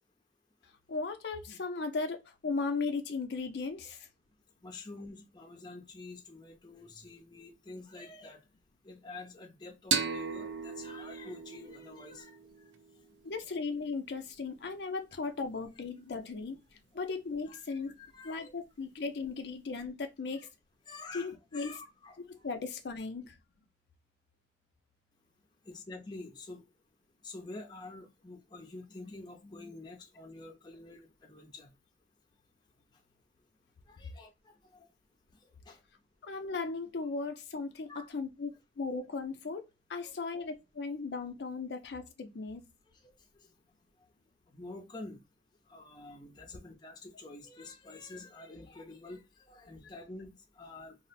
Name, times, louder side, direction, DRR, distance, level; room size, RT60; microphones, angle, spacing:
voice 1, 0.9-4.1 13.2-17.9 18.2-20.5 21.1-21.8 22.3-23.3 36.2-38.5 38.8-42.6, left 4 dB, 70° left, 0.5 m, -37 dB
voice 2, 4.6-8.4 8.8-12.4 17.5-18.5 20.9-22.5 25.6-26.6 27.2-31.7 33.9-34.9 35.7-35.8 37.9-38.1 40.0-40.1 43.0-43.1 44.5-45.2 45.7-51.0, left 2 dB, 25° left, 0.6 m, -48 dB
sound 1, 9.9-13.3, right 6 dB, 85° right, 0.5 m, -36 dB
2.4 x 2.1 x 3.9 m
head